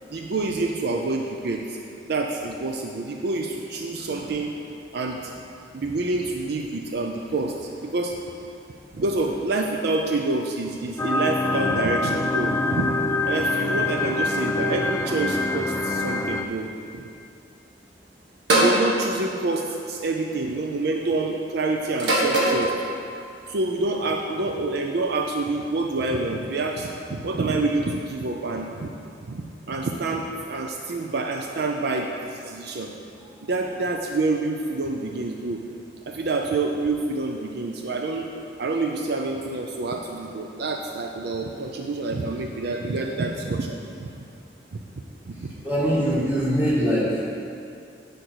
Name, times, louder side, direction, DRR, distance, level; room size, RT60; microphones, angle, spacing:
voice 1, 0.1-1.8 2.1-4.5 4.9-5.3 5.7-8.2 8.9-12.9 13.2-17.1 18.6-22.7 23.5-28.9 29.3-32.9 33.5-35.6 36.1-38.3 38.6-44.1 44.7-44.8 45.3-45.5, right 3 dB, 60° right, 2 dB, 0.5 m, -27 dB
sound 1, 11.0-16.5, left 2 dB, 15° left, 0.3 m, -25 dB
sound 2, 18.5-18.8 20.0-20.4 22.0-22.7, right 1 dB, 85° right, 1.5 m, -20 dB
voice 2, 45.6-47.1, equal, 10° right, -8 dB, 2.2 m, -22 dB
10.5 x 5.2 x 4.6 m, 2.6 s
head